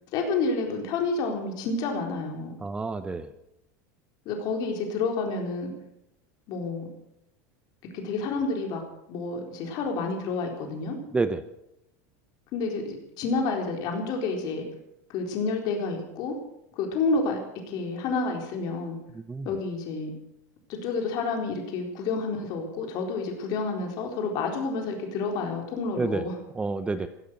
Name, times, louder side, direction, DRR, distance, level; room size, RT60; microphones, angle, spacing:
voice 1, 0.1-2.5 4.3-5.7 6.5-6.9 7.9-8.8 9.1-11.0 12.5-14.6 15.1-16.4 16.8-17.4 17.7-19.0 19.4-20.1 20.7-26.3, left 4 dB, 50° left, 2 dB, 4.1 m, -29 dB
voice 2, 2.6-3.3 11.1-11.4 19.1-19.5 26.0-26.3 26.5-27.1, right 3 dB, 10° right, 12 dB, 0.8 m, -29 dB
15.5 x 13.5 x 6.6 m, 0.80 s
supercardioid pair, 140°, 9 cm